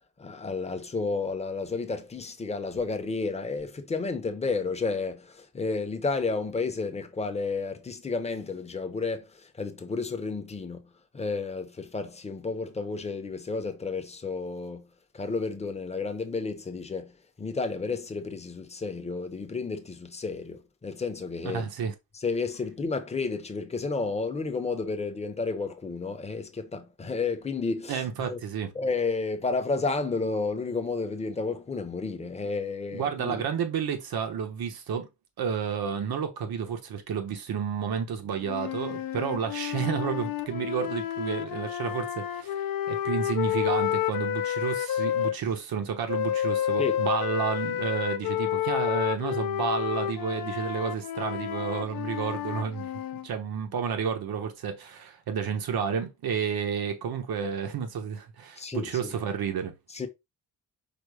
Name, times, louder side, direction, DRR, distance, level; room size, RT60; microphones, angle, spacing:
voice 1, 0.2-10.8 11.1-14.9 15.1-21.7 22.2-28.4 28.7-33.4 46.8-46.9 58.6-59.1 59.9-60.1, left 4 dB, 20° left, 0.6 m, -31 dB
voice 2, 21.4-21.9 27.9-28.7 32.9-35.1 35.4-52.9 53.2-59.7, right 7 dB, 90° right, 1.0 m, -31 dB
sound 1, 38.4-45.4 46.1-53.3, left 11 dB, 70° left, 0.5 m, -30 dB
5.0 x 2.1 x 4.8 m
wide cardioid pair, 160°, 36 cm